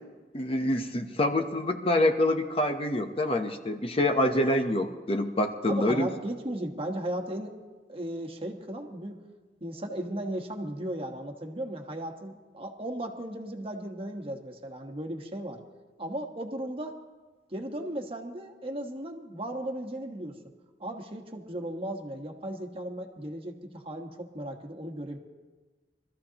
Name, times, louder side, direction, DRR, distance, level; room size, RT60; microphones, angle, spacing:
voice 1, 0.3-6.1, left 1 dB, 35° left, 6 dB, 0.8 m, -26 dB
voice 2, 5.7-7.5 7.9-9.2 9.6-15.6 16.0-17.0 17.5-20.4 20.8-25.2, right 1 dB, 35° right, 4 dB, 1.3 m, -36 dB
24.0 x 14.0 x 2.9 m, 1.3 s
head